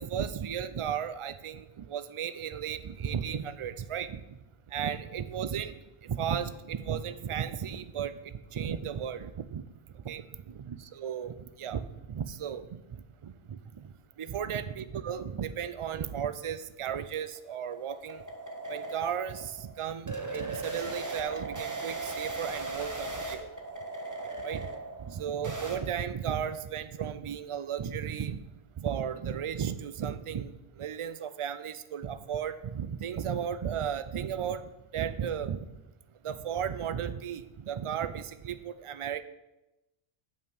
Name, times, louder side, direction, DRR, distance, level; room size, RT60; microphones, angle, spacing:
voice 1, 0.0-4.2 4.7-5.7 6.0-9.6 9.9-13.9 14.2-18.2 18.7-23.5 24.4-24.7 25.1-28.4 28.8-35.6 36.2-39.2, right 8 dB, 60° right, 13 dB, 0.3 m, -35 dB
sound 1, 16.8-25.8, right 3 dB, 20° right, 0.7 m, -38 dB
7.1 x 5.7 x 6.2 m, 0.97 s
omnidirectional pair, 1.0 m